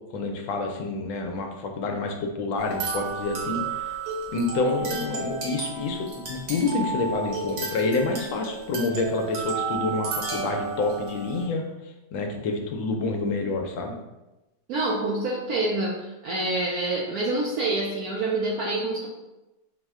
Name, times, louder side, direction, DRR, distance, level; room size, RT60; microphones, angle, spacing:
voice 1, 0.1-4.0 4.3-11.7 12.1-13.9, left 3 dB, 80° left, 3 dB, 1.3 m, -28 dB
sound 1, 2.6-11.4, right 4 dB, 55° right, 1.2 m, -33 dB
voice 2, 14.7-19.1, right 2 dB, 75° right, -3 dB, 0.8 m, -27 dB
4.5 x 2.1 x 3.5 m, 1.0 s
omnidirectional pair, 2.1 m